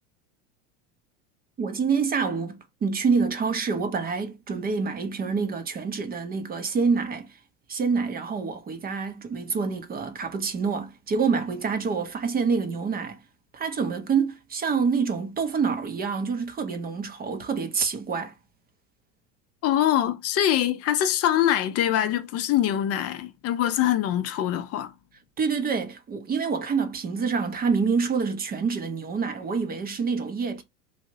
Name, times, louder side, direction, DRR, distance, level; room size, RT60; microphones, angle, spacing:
voice 1, 1.6-7.4 7.7-13.2 13.5-18.3 25.4-30.6, right 5 dB, 25° right, 0.6 m, -27 dB
voice 2, 19.6-24.9, left 11 dB, 40° left, 0.5 m, -24 dB
3.2 x 2.7 x 2.5 m
hypercardioid pair, 100°, 37 cm